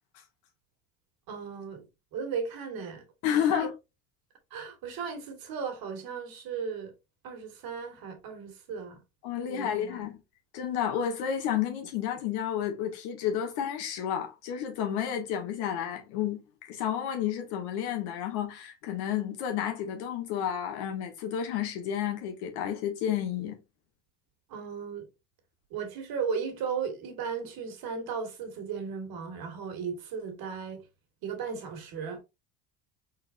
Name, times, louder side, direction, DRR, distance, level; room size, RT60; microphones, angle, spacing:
voice 1, 1.3-3.0 3.3-3.7 4.5-6.9 7.2-9.0 9.5-10.1 24.5-25.1 25.7-30.9 31.2-32.2, right 6 dB, 55° right, 2.0 m, -36 dB
voice 2, 3.2-3.7 9.2-10.2 10.5-16.4 16.7-23.6, left 9 dB, 65° left, 1.6 m, -31 dB
4.3 x 4.1 x 2.6 m
hypercardioid pair, 70°, 42 cm